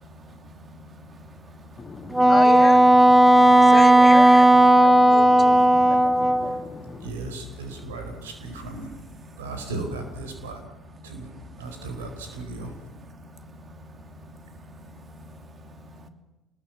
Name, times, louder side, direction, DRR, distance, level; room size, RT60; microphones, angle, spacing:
voice 1, 0.0-2.3 3.2-3.4 4.9-5.0 5.5-6.5 9.3-9.4 13.1-13.6 13.8-16.1, equal, 35° right, 7 dB, 2.9 m, -47 dB
voice 2, 1.8-7.1, left 5 dB, 30° left, 7 dB, 2.2 m, -34 dB
Wind instrument woodwind instrument, 2.1-6.6, right 1 dB, 5° right, 1.3 m, -15 dB
voice 3, 7.0-8.9 9.4-10.6 11.0-11.3 11.6-12.7, right 2 dB, 80° right, 6 dB, 4.4 m, -35 dB
26.5 x 21.0 x 7.3 m, 1.0 s
hypercardioid pair, 60°, 0 cm